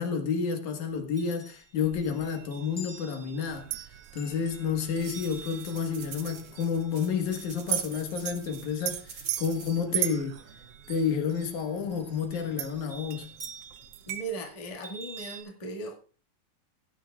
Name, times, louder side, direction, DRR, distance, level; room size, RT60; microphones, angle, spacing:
voice 1, 0.0-3.7 4.1-10.4 10.9-13.3, left 6 dB, 80° left, 2.9 m, -30 dB
Chime, 0.9-9.4 9.7-11.1 11.9-15.4, right 2 dB, 5° right, 1.9 m, -50 dB
sound 1, 3.4-14.2, right 13 dB, 75° right, 1.4 m, -38 dB
sound 2, 5.0-9.8, right 6 dB, 50° right, 1.7 m, -47 dB
voice 2, 14.1-16.0, right 2 dB, 15° left, 1.2 m, -37 dB
17.0 x 9.5 x 2.4 m
omnidirectional pair, 3.4 m